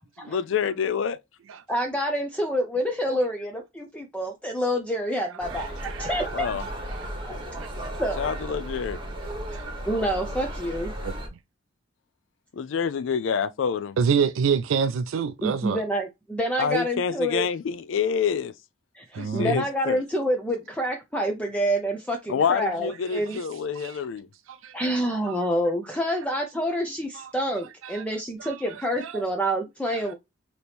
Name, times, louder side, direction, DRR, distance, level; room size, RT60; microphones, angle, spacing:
voice 1, 0.3-1.2 6.3-6.6 8.2-9.0 12.5-14.0 16.6-18.5 19.2-20.0 22.3-24.3, left 6 dB, 70° left, 0.4 m, -27 dB
voice 2, 1.7-6.5 7.2-7.4 8.0-8.3 9.9-10.9 15.4-17.4 18.9-23.4 24.7-30.1, equal, 5° left, 0.5 m, -27 dB
sound 1, 5.4-11.3, right 1 dB, 25° right, 1.2 m, -34 dB
voice 3, 14.0-15.8 19.1-19.6 23.3-23.4 23.8-24.0 24.5-24.7 27.2-27.3 27.8-28.0 28.4-28.5 29.0-29.2, right 6 dB, 90° right, 0.4 m, -26 dB
4.2 x 2.9 x 3.3 m
head